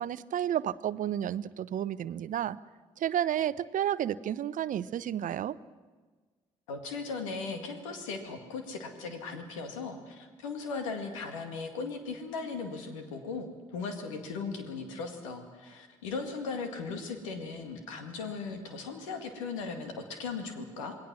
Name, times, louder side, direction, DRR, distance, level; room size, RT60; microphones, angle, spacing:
voice 1, 0.0-2.6 3.0-5.6, right 10 dB, 55° right, 17 dB, 0.7 m, -31 dB
voice 2, 6.7-21.0, left 4 dB, 85° left, 6 dB, 2.0 m, -38 dB
27.0 x 20.0 x 6.2 m, 1.4 s
hypercardioid pair, 45°, 16 cm